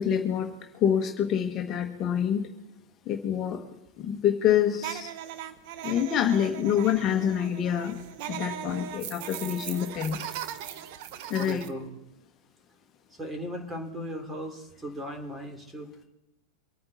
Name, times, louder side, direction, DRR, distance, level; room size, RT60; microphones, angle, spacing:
voice 1, 0.0-2.5 3.1-3.6 4.0-5.1 5.8-10.2 11.3-11.6, left 9 dB, 35° left, 4 dB, 1.4 m, -26 dB
sound 1, 4.8-11.7, right 11 dB, 50° right, 1.1 m, -39 dB
voice 2, 11.4-12.0 13.1-15.9, equal, 15° right, 4 dB, 3.3 m, -37 dB
24.5 x 9.5 x 4.2 m, 0.87 s
figure-of-eight pair, 95°, 0 cm